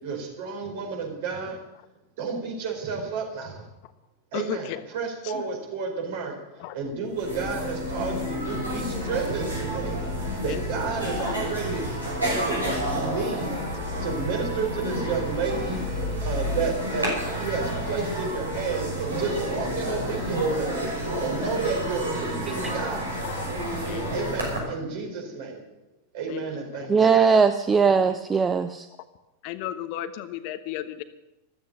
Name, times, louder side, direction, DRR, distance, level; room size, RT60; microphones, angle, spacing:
voice 1, 0.0-1.6 2.2-3.6 4.3-6.3 6.7-15.8 16.2-23.1 24.1-25.6 26.1-27.1, right 4 dB, 50° right, 2 dB, 4.8 m, -31 dB
voice 2, 4.3-4.8 5.2-5.5 6.6-6.8 10.3-10.9 11.2-11.4 23.2-23.5 23.9-24.2 26.3-26.4 26.7-26.9 28.0-28.1 29.4-31.0, left 13 dB, 45° left, 11 dB, 1.0 m, -34 dB
sound 1, 6.8-6.9 7.1-24.6, equal, 80° right, 6.3 m, -30 dB
voice 3, 26.9-28.9, right 5 dB, 15° right, 10 dB, 0.7 m, -20 dB
14.5 x 13.5 x 6.5 m, 0.93 s
figure-of-eight pair, 90°, 0 cm